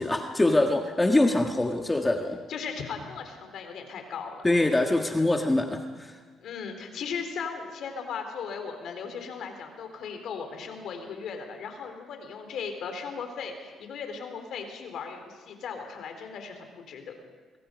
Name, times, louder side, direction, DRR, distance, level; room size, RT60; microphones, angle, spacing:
voice 1, 0.0-2.4 4.4-6.2, left 2 dB, 15° left, 4 dB, 1.6 m, -24 dB
voice 2, 2.5-4.4 6.4-17.2, left 6 dB, 70° left, 5 dB, 4.0 m, -37 dB
25.0 x 23.0 x 5.3 m, 1.5 s
cardioid pair, 85°, 0 cm